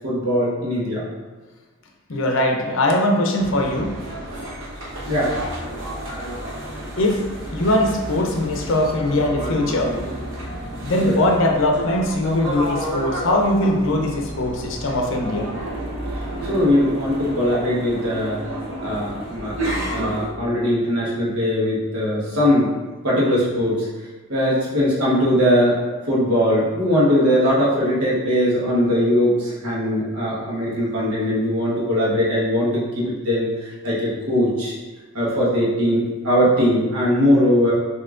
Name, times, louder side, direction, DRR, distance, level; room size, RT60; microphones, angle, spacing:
voice 1, 0.0-1.0 5.1-5.4 11.0-11.2 16.4-18.4 18.8-19.5 19.9-22.7 23.0-23.9 24.3-25.8 26.1-34.7 35.1-37.7, equal, 85° right, -6 dB, 1.2 m, -20 dB
voice 2, 2.1-3.9 7.0-7.2 7.5-10.0 10.8-15.5, left 1 dB, 60° left, 2 dB, 0.6 m, -21 dB
sound 1, 3.4-20.3, right 1 dB, 60° right, 1.0 m, -31 dB
6.0 x 2.8 x 2.5 m, 1.3 s
head